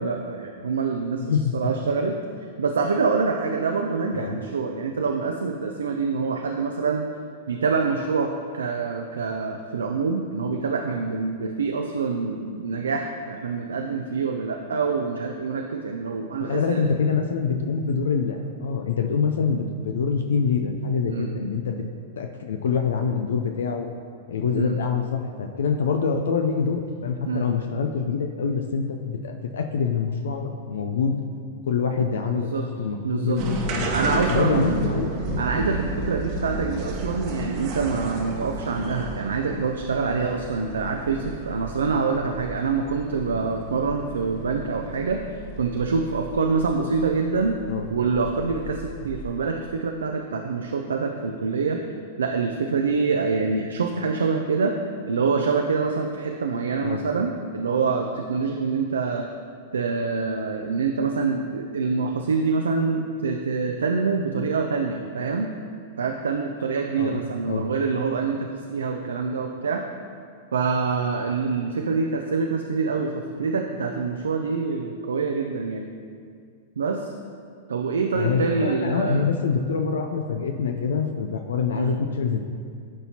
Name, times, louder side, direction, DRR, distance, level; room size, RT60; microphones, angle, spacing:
voice 1, 0.0-1.2 1.5-2.2 2.6-7.1 7.5-16.8 21.0-21.3 24.6-24.8 27.3-27.5 31.9-32.0 32.3-32.6 33.0-33.4 33.9-34.8 35.4-47.6 47.9-51.8 52.2-54.7 55.1-59.3 59.7-65.5 66.0-69.8 70.5-73.1 73.4-75.9 76.8-77.1 77.7-79.3 81.8-82.0, right 4 dB, 80° right, 3 dB, 0.4 m, -25 dB
voice 2, 1.2-1.5 1.8-1.9 4.1-4.4 16.4-21.8 22.2-23.9 24.3-31.1 31.6-35.4 47.7-47.9 56.8-57.0 67.0-67.6 78.1-82.4, left 5 dB, 70° left, 5 dB, 0.4 m, -25 dB
sound 1, 33.4-49.5, right 2 dB, 45° right, 0.9 m, -33 dB
11.5 x 4.2 x 2.8 m, 2.2 s
hypercardioid pair, 100°, 0 cm